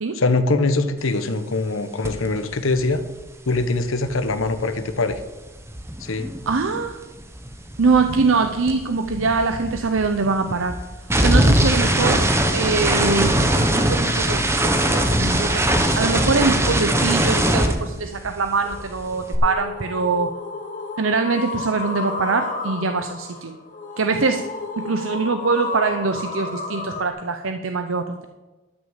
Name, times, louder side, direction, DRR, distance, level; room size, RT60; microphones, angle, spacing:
voice 1, 0.1-3.0 3.5-5.2 6.0-6.3, left 3 dB, 85° left, 9 dB, 1.1 m, -22 dB
sound 1, 2.0-2.3 2.5-6.9 7.2-18.5 18.7-19.4, right 1 dB, 15° right, 1.0 m, -21 dB
voice 2, 6.5-7.0 7.8-10.8 11.2-12.2 12.5-14.5 14.9-20.3 21.0-23.6 24.0-24.5 24.8-28.2, right 4 dB, 80° right, 7 dB, 0.7 m, -23 dB
sound 2, 18.6-27.1, left 3 dB, 40° left, 1.3 m, -32 dB
12.5 x 6.3 x 7.3 m, 1.1 s
head